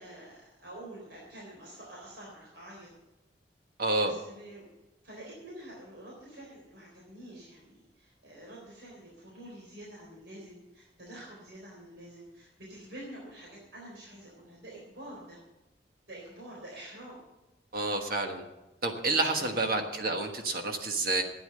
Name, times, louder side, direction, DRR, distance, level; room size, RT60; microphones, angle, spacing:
voice 1, 0.0-2.9 4.0-4.7 5.0-15.4 16.1-17.2 19.3-19.7, right 1 dB, 70° right, -4 dB, 3.9 m, -47 dB
voice 2, 3.8-4.2 17.7-18.4 18.8-21.2, right 2 dB, 55° right, 4 dB, 1.4 m, -29 dB
13.0 x 9.5 x 6.7 m, 1.0 s
head